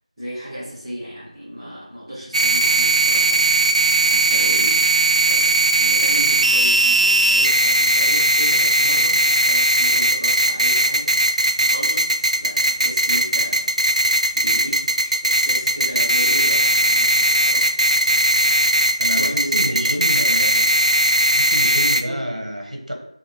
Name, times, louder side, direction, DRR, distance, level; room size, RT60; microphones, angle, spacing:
voice 1, 0.2-3.4 4.0-4.8 5.1-13.7 14.0-14.8 15.2-17.7 19.1-19.9 20.2-20.3 22.0-22.5, equal, ahead, -26 dB, 0.5 m, -34 dB
sound 1, 2.3-22.0, right 1 dB, 75° right, 0.3 m, -18 dB
voice 2, 19.0-20.7 21.3-22.9, equal, 90° right, 1 dB, 1.0 m, -28 dB
2.9 x 2.7 x 4.2 m, 0.77 s
figure-of-eight pair, 175°, 4 cm